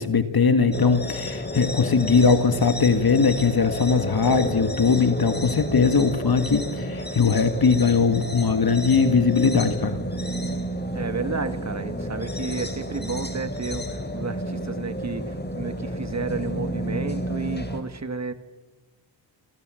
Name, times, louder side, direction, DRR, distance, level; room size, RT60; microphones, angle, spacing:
voice 1, 0.0-10.0, left 5 dB, 50° left, 9 dB, 1.8 m, -20 dB
sound 1, 0.7-17.8, equal, 20° left, 3.4 m, -31 dB
voice 2, 10.9-18.3, right 4 dB, 35° right, 11 dB, 1.9 m, -32 dB
28.5 x 25.5 x 7.8 m, 1.3 s
wide cardioid pair, 100°, 46 cm